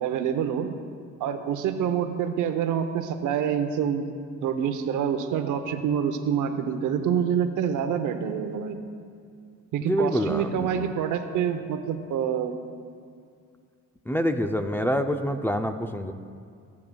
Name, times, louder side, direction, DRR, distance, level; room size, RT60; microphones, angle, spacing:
voice 1, 0.0-0.7 1.2-4.1 4.4-8.8 9.7-12.5, right 8 dB, 85° right, 8 dB, 0.7 m, -26 dB
voice 2, 9.8-10.9 14.1-16.1, equal, 5° left, 5 dB, 0.4 m, -26 dB
16.0 x 8.3 x 2.3 m, 2.3 s
cardioid pair, 90°, 30 cm